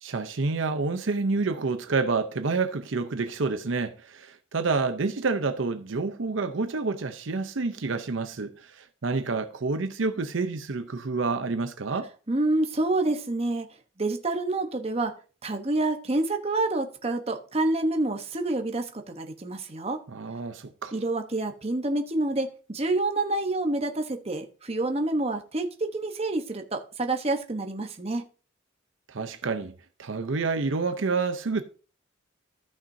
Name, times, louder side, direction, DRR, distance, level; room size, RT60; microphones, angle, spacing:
voice 1, 0.0-12.1 20.1-20.9 29.1-29.7 30.0-31.6, right 4 dB, 70° right, 0.7 m, -28 dB
voice 2, 12.3-13.7 14.0-15.1 15.4-20.0 20.9-28.3, right 2 dB, 30° right, 1.0 m, -28 dB
14.0 x 6.0 x 2.7 m
head